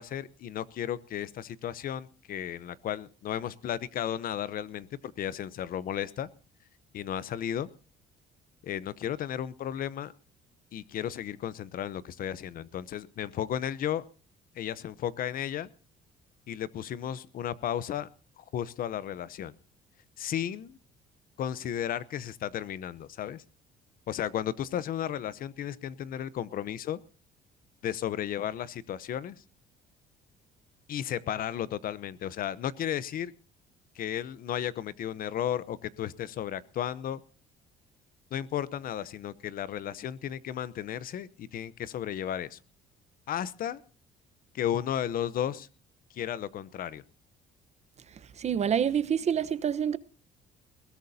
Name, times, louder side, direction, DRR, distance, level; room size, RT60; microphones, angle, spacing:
voice 1, 0.0-6.3 6.9-7.7 8.6-10.1 10.7-14.0 14.6-15.7 16.5-18.1 18.4-19.5 20.2-20.8 21.4-23.4 24.1-27.0 27.8-29.4 30.9-33.3 33.9-37.2 38.3-42.6 43.3-43.8 44.5-45.7 46.1-47.0, left 10 dB, 55° left, 0.8 m, -34 dB
voice 2, 48.4-50.0, right 8 dB, 40° right, 1.0 m, -27 dB
20.5 x 17.0 x 2.8 m
cardioid pair, 110°, 17 cm